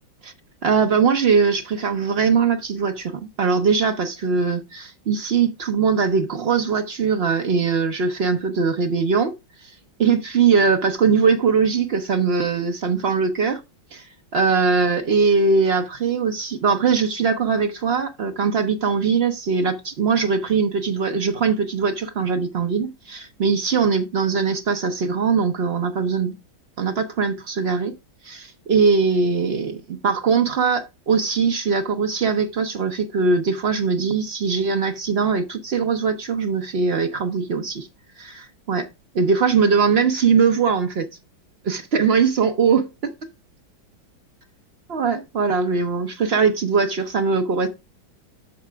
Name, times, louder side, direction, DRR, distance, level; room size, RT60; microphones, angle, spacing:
voice 1, 0.6-9.3 9.6-13.6 13.9-14.1 14.3-26.3 26.8-27.9 28.2-37.9 38.2-38.9 39.1-41.1 41.6-43.1 44.9-47.7, right 5 dB, 80° right, 0.5 m, -21 dB
9.9 x 6.6 x 3.4 m
omnidirectional pair, 2.2 m